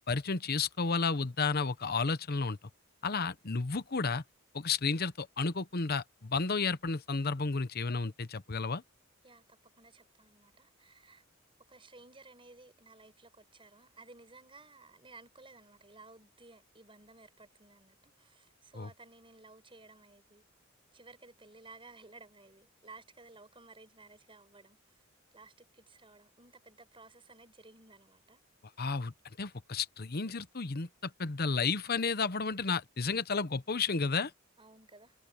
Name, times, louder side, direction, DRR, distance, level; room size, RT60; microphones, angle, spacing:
voice 1, 0.1-2.6 3.0-4.2 4.5-8.8 18.7-18.9 28.8-34.3, left 4 dB, 45° left, 0.9 m, -32 dB
voice 2, 9.2-11.2 11.7-20.4 20.9-25.0 25.3-28.4 34.6-35.1, right 3 dB, 25° right, 6.0 m, -56 dB
head